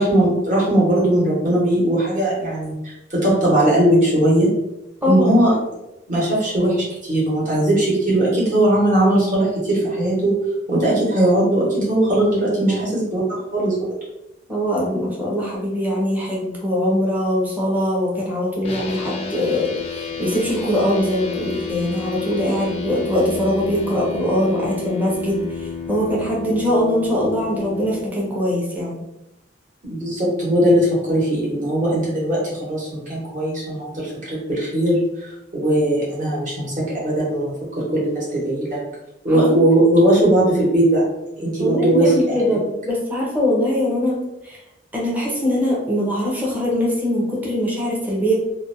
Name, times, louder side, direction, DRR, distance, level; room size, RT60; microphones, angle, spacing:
voice 1, 0.0-4.5 5.1-5.5 6.1-10.4 10.7-13.2 13.5-13.8 29.9-36.7 37.0-37.5 37.9-38.8 39.2-41.0 41.3-42.4, right 1 dB, 45° right, -6 dB, 1.1 m, -19 dB
voice 2, 5.0-5.4 12.7-12.8 13.2-13.3 14.5-29.0 39.3-39.6 41.6-44.2 44.4-44.6 44.9-48.3, equal, 10° right, -4 dB, 0.6 m, -22 dB
sound 1, 18.6-28.0, left 5 dB, 35° left, 0.4 m, -31 dB
2.6 x 2.1 x 2.6 m, 0.90 s
head